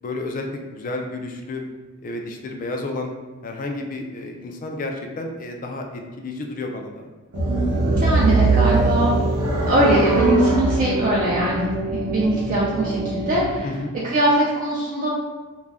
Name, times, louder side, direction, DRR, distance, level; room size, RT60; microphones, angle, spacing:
voice 1, 0.0-1.6 2.0-3.1 3.4-7.1 13.6-13.9, left 2 dB, 35° left, 3 dB, 0.3 m, -31 dB
sound 1, 7.3-13.6, right 2 dB, 85° right, 0.7 m, -22 dB
voice 2, 8.0-9.1 9.7-13.7 14.0-15.1, right 1 dB, 40° right, -6 dB, 0.4 m, -21 dB
2.4 x 2.1 x 3.3 m, 1.3 s
head